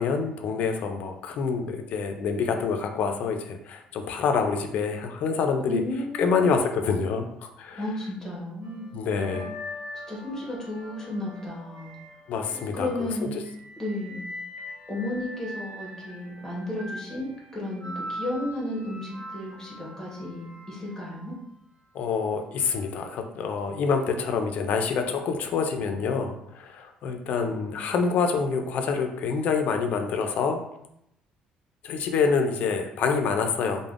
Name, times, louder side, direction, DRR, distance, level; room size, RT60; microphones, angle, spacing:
voice 1, 0.0-5.8 6.1-7.9 8.9-9.5 12.3-13.4 21.9-30.6 31.8-33.9, left 5 dB, 55° left, 5 dB, 0.3 m, -27 dB
voice 2, 5.7-6.6 7.7-8.9 9.3-9.5 10.1-11.9 12.7-13.3 13.8-14.2 14.9-21.3, left 1 dB, 15° left, -3 dB, 0.9 m, -33 dB
sound 1, 8.6-13.0 13.4-21.5 22.6-22.8, left 1 dB, 30° right, 0.5 m, -42 dB
3.3 x 2.0 x 2.4 m, 0.77 s
cardioid pair, 145°, 3 cm